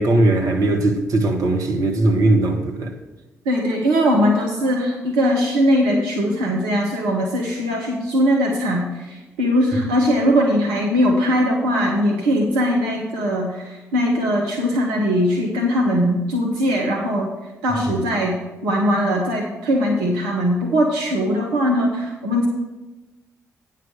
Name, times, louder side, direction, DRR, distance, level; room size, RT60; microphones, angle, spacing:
voice 1, 0.0-2.9, right 2 dB, 50° right, 1.3 m, -19 dB
voice 2, 3.4-17.3 17.6-18.4 18.6-22.5, equal, 70° right, 1.0 m, -20 dB
9.4 x 5.8 x 6.2 m
figure-of-eight pair, 40°, 7 cm